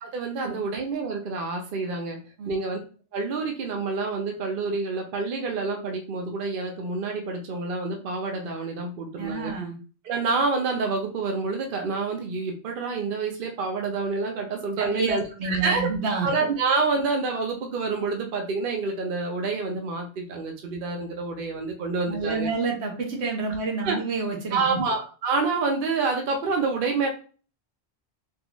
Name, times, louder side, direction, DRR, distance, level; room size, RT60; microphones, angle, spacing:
voice 1, 0.0-2.2 2.5-2.8 3.1-9.5 10.0-15.9 16.2-22.5 23.8-24.0 24.5-27.1, right 4 dB, 60° right, 2 dB, 0.8 m, -28 dB
voice 2, 9.2-9.7 14.8-16.3 22.1-24.8, right 4 dB, 80° right, 1 dB, 1.2 m, -28 dB
3.7 x 2.4 x 2.9 m, 0.38 s
omnidirectional pair, 1.1 m